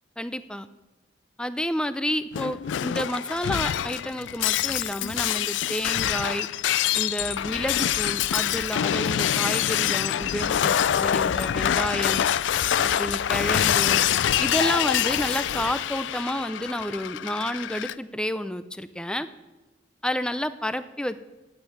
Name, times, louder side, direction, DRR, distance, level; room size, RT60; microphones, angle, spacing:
voice 1, 0.2-0.7 1.4-6.5 6.9-12.3 13.0-14.0 14.4-19.3 20.0-21.2, equal, 5° left, 13 dB, 0.5 m, -30 dB
Shatter, 2.3-17.9, left 10 dB, 90° left, 0.3 m, -25 dB
8.9 x 8.6 x 9.5 m, 1.1 s
head